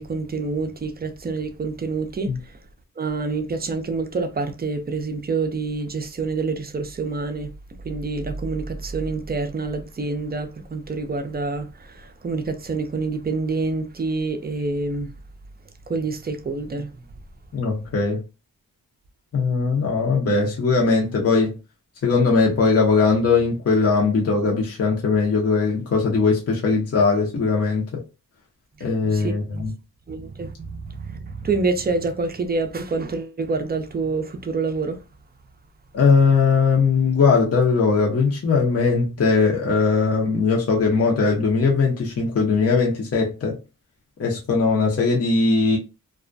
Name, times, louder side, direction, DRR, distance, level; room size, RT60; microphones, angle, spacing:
voice 1, 0.0-2.6 3.0-7.5 7.8-15.1 15.9-17.1 28.8-29.7 30.1-35.0, right 3 dB, 25° right, 0.5 m, -27 dB
voice 2, 17.5-18.2 19.3-21.5 22.0-28.0 28.8-29.7 35.9-43.6 44.2-45.8, left 4 dB, 40° left, 0.7 m, -20 dB
2.3 x 2.1 x 2.5 m
cardioid pair, 65°, 36 cm